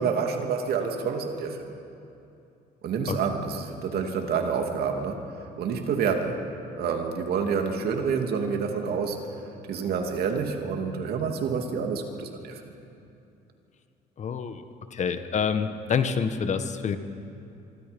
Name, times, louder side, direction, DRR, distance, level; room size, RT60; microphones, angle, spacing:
voice 1, 0.0-1.7 2.8-5.2 5.6-6.4 6.7-9.4 9.7-12.7, right 6 dB, 70° right, 3 dB, 2.7 m, -28 dB
voice 2, 14.2-14.6 14.9-17.0, left 6 dB, 45° left, 9 dB, 1.4 m, -27 dB
25.5 x 24.5 x 5.3 m, 2.7 s
cardioid pair, 110°, 17 cm